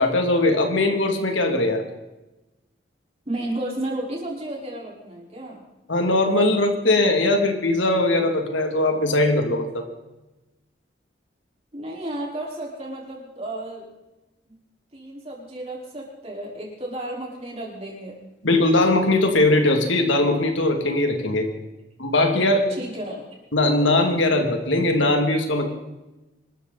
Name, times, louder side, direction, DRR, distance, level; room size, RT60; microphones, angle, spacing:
voice 1, 0.0-1.8 5.9-9.8 18.4-21.5 22.0-22.6 23.5-25.6, left 2 dB, 85° left, 4 dB, 2.7 m, -20 dB
voice 2, 3.2-5.6 11.7-13.9 14.5-14.6 14.9-18.2 22.7-23.3, right 1 dB, 30° right, -3 dB, 4.7 m, -33 dB
25.0 x 13.5 x 4.2 m, 1.0 s
head